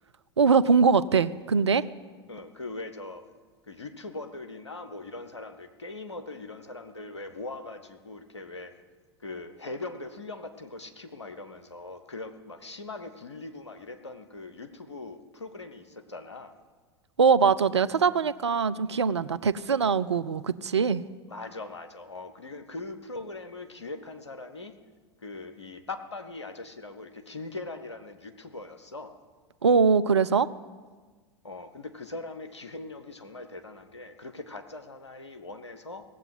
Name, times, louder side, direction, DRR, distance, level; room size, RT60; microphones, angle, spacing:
voice 1, 0.4-1.8 17.2-21.0 29.6-30.5, right 5 dB, 85° right, 16 dB, 0.4 m, -22 dB
voice 2, 2.3-3.2 3.7-8.7 9.2-16.5 21.3-24.7 25.2-29.2 31.4-36.0, left 2 dB, 90° left, 8 dB, 1.0 m, -41 dB
17.0 x 7.9 x 7.7 m, 1.4 s
figure-of-eight pair, 85°, 14 cm